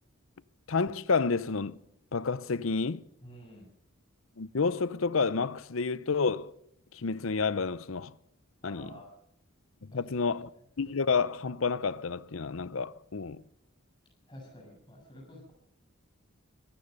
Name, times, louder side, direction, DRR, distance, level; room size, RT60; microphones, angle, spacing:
voice 1, 0.7-1.8 2.1-3.0 4.4-6.5 6.9-8.1 8.6-9.0 9.8-10.5 10.8-13.4, left 4 dB, 75° left, 0.7 m, -30 dB
voice 2, 3.2-3.7 8.6-9.1 9.9-10.0 14.3-15.5, equal, 20° left, 7.2 m, -49 dB
24.5 x 16.0 x 6.7 m
head